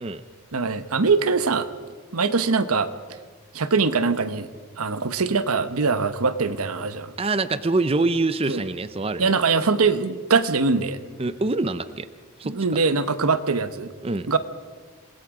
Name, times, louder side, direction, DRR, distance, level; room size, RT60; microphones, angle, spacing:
voice 1, 0.5-1.7 2.1-2.9 3.5-4.5 4.8-7.1 8.5-8.6 9.2-11.0 12.4-13.9 14.3-14.4, right 4 dB, 85° right, 12 dB, 1.1 m, -22 dB
voice 2, 7.2-9.3 11.2-12.1 12.4-12.5 14.0-14.3, right 3 dB, 25° right, 12 dB, 0.5 m, -25 dB
27.5 x 19.5 x 4.9 m, 1.5 s
head